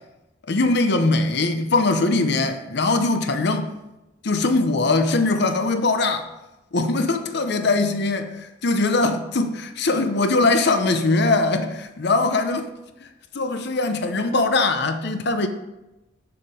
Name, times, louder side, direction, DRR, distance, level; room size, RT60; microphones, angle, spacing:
voice 1, 0.5-3.7 4.2-6.3 6.7-12.7 13.3-15.5, left 3 dB, 55° left, 7 dB, 0.7 m, -21 dB
7.3 x 6.9 x 4.9 m, 0.98 s
head